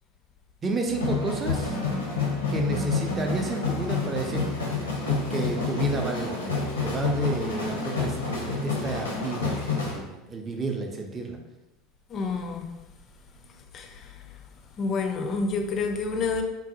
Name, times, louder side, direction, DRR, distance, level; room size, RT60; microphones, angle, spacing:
voice 1, 0.6-1.8 2.5-4.4 5.1-11.4, right 3 dB, 25° right, 3 dB, 0.5 m, -31 dB
sound 1, 0.9-10.0, left 4 dB, 80° left, 0.7 m, -29 dB
voice 2, 12.1-12.7 13.7-14.1 14.8-16.4, left 4 dB, 35° left, 4 dB, 0.4 m, -28 dB
3.8 x 2.1 x 2.7 m, 1.0 s
figure-of-eight pair, 75°, 0 cm